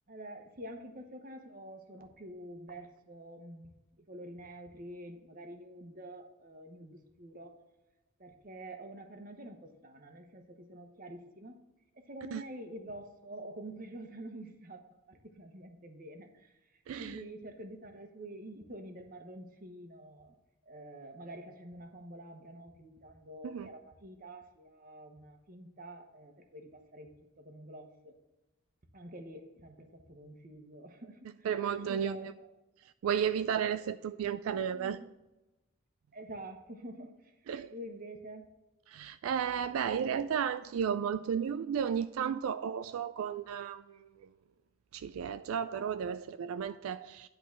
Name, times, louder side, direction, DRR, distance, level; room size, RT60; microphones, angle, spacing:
voice 1, 0.1-3.7 4.0-7.6 8.2-11.6 11.9-14.8 15.1-20.4 20.7-28.2 28.9-31.5 31.9-32.3 34.7-35.1 36.1-38.5, right 1 dB, 40° right, 1.0 m, -47 dB
voice 2, 16.9-17.2 23.4-23.7 31.4-32.2 33.0-35.0 37.5-37.7 38.9-44.3 44.9-47.3, right 8 dB, 85° right, 0.3 m, -33 dB
10.5 x 3.9 x 6.0 m
head